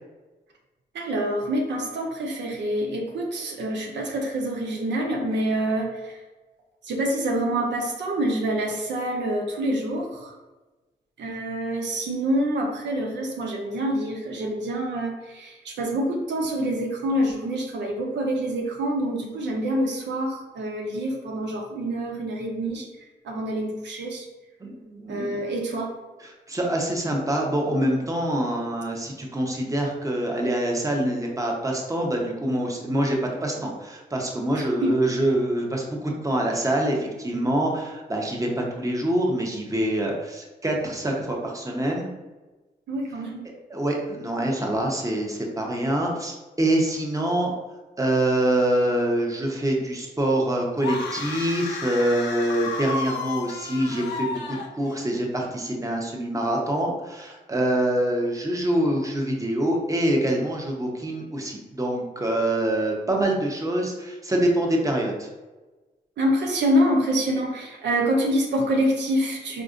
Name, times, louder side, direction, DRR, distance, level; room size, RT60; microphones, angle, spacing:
voice 1, 0.9-6.2 6.8-10.3 11.2-22.9 23.2-24.3 25.1-25.9 34.5-34.9 42.9-43.4 66.2-69.6, right 1 dB, 85° right, 0 dB, 0.6 m, -26 dB
voice 2, 24.6-25.4 26.2-42.1 43.4-47.5 48.0-65.3, right 1 dB, 20° right, -1 dB, 0.8 m, -25 dB
sound 1, 50.8-55.2, left 4 dB, 90° left, 0.4 m, -32 dB
4.1 x 2.4 x 2.5 m, 1.2 s
cardioid pair, 50°, 18 cm